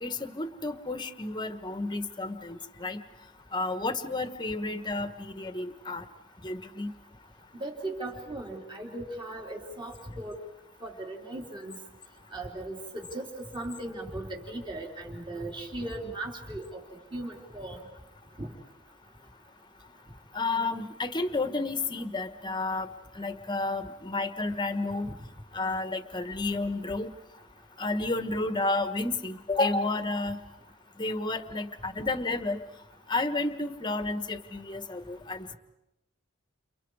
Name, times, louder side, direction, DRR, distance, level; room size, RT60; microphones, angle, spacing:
voice 1, 0.0-3.0 3.5-6.0 6.4-6.9 20.3-22.9 23.1-25.1 25.5-27.1 27.8-30.4 31.0-32.6 33.1-35.5, left 2 dB, 25° left, 10 dB, 1.4 m, -31 dB
voice 2, 7.6-10.3 10.8-11.8 12.3-16.8 17.1-17.8 18.4-18.5, right 2 dB, 25° right, 0 dB, 3.7 m, -37 dB
29.5 x 29.5 x 4.9 m, 0.92 s
head